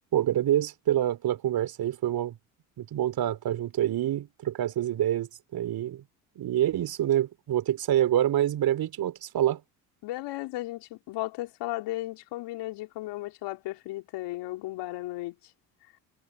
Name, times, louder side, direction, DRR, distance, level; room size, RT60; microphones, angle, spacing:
voice 1, 0.1-2.4 2.8-6.0 6.4-9.6, right 12 dB, 55° right, 3.9 m, -26 dB
voice 2, 10.0-15.4, left 17 dB, 65° left, 4.9 m, -35 dB
hypercardioid pair, 65°, 45 cm